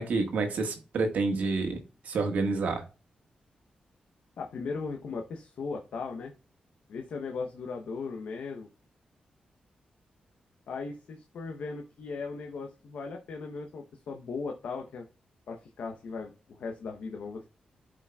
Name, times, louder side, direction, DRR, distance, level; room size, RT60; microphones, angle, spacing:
voice 1, 0.0-1.8 2.0-2.8, right 3 dB, 90° right, 4 dB, 1.5 m, -28 dB
voice 2, 4.4-6.3 6.9-8.7 10.7-15.1 15.5-17.5, left 4 dB, 80° left, 2 dB, 0.8 m, -37 dB
11.5 x 5.0 x 2.3 m, 0.34 s
wide cardioid pair, 120°, 3 cm